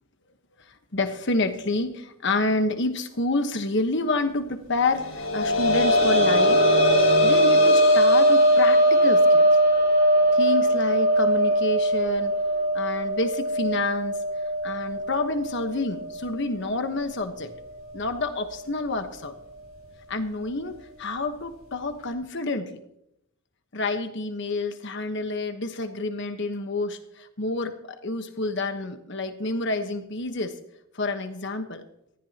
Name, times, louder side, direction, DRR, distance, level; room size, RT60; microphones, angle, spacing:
voice 1, 0.7-6.6 7.2-9.5 10.3-12.3 12.7-14.2 14.6-17.5 17.9-19.3 20.1-22.8 23.7-30.5 30.9-31.8, left 2 dB, 55° left, 7 dB, 1.2 m, -28 dB
sound 1, 5.0-16.4 16.8-16.9 18.4-18.5, equal, 80° left, 6.8 m, -20 dB
18.5 x 14.0 x 2.9 m, 0.80 s
head